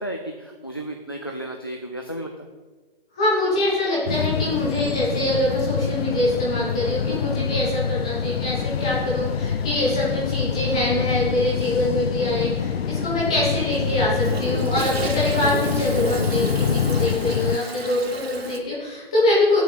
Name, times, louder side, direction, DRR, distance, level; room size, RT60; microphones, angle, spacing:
voice 1, 0.0-2.5 16.6-17.1, right 1 dB, 25° left, 3 dB, 0.5 m, -34 dB
voice 2, 3.1-19.6, left 1 dB, 5° left, -7 dB, 1.0 m, -24 dB
sound 1, 4.1-17.6, left 7 dB, 85° left, 0.5 m, -26 dB
Toilet flush, 13.3-18.6, right 2 dB, 85° right, 1.9 m, -33 dB
8.3 x 7.0 x 8.3 m, 1.3 s
hypercardioid pair, 180°, 30 cm